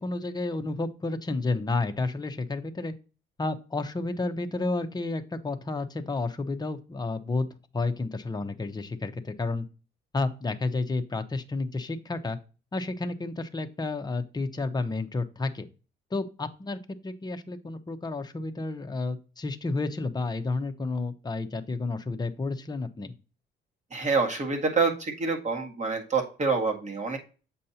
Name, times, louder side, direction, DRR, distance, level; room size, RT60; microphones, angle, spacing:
voice 1, 0.0-2.9 3.4-9.6 10.1-12.4 12.7-15.7 16.1-23.1, left 3 dB, 20° left, 6 dB, 0.8 m, -31 dB
voice 2, 23.9-27.2, right 4 dB, 35° right, 2 dB, 1.8 m, -27 dB
7.8 x 5.2 x 2.9 m, 0.34 s
cardioid pair, 90°, 20 cm